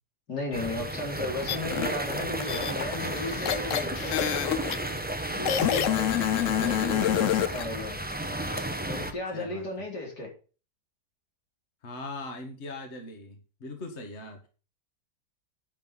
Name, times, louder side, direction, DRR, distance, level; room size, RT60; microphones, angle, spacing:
voice 1, 0.3-4.4 5.3-6.2 6.6-8.0 8.9-10.3, left 2 dB, 85° left, 0 dB, 4.4 m, -35 dB
sound 1, 0.5-9.1, right 1 dB, 5° right, 0.9 m, -33 dB
sound 2, 1.5-1.9 2.4-4.8 5.5-7.7, left 10 dB, 60° left, 1.0 m, -27 dB
voice 2, 9.3-9.6 11.8-14.5, left 2 dB, 45° left, 4 dB, 2.0 m, -40 dB
10.0 x 6.0 x 7.3 m, 0.36 s
omnidirectional pair, 1.7 m